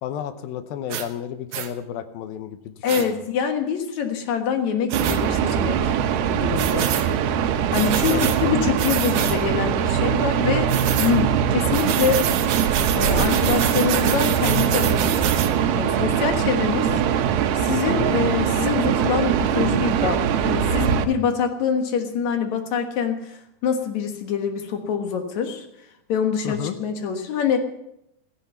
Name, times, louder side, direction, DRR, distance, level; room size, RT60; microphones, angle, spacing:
voice 1, 0.0-3.1 8.1-8.6 9.2-9.5 16.7-17.0 17.9-18.1 26.4-26.7, left 9 dB, 80° left, 11 dB, 2.6 m, -32 dB
sound 1, 0.9-1.1 1.5-1.7 2.9-3.0 4.9-5.2 6.6-7.1 7.7-8.4 8.8-9.4 10.7-11.1 11.7-15.5, right 9 dB, 65° right, 2.1 m, -27 dB
voice 2, 2.8-5.9 6.2-6.9 7.7-10.7 11.0-12.2 12.9-15.3 15.7-16.9 17.6-25.7 26.1-27.6, left 7 dB, 60° left, 6 dB, 2.4 m, -25 dB
sound 2, 4.9-21.0, right 8 dB, 85° right, 2.9 m, -22 dB
16.0 x 15.0 x 5.6 m, 0.80 s
omnidirectional pair, 4.3 m